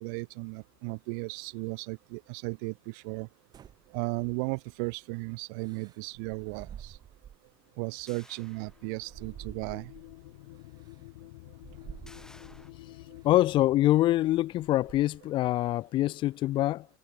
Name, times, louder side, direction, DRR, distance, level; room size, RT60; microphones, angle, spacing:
voice 1, 0.0-3.3 3.9-7.0 7.8-9.9, right 37 dB, 55° right, 0.4 m, -35 dB
sound 1, 3.5-4.7 5.6-7.5 7.9-10.2 10.8-11.0 11.6-12.7 13.3-13.6 14.0-15.3, right 9 dB, 30° right, 2.0 m, -50 dB
sound 2, 8.1-9.3 9.8-9.9 12.1-12.7, left 1 dB, 5° left, 2.8 m, -56 dB
sound 3, 8.4-13.8, left 23 dB, 60° left, 2.1 m, -49 dB
voice 2, 13.2-16.9, left 15 dB, 40° left, 0.6 m, -25 dB
figure-of-eight pair, 80°, 13 cm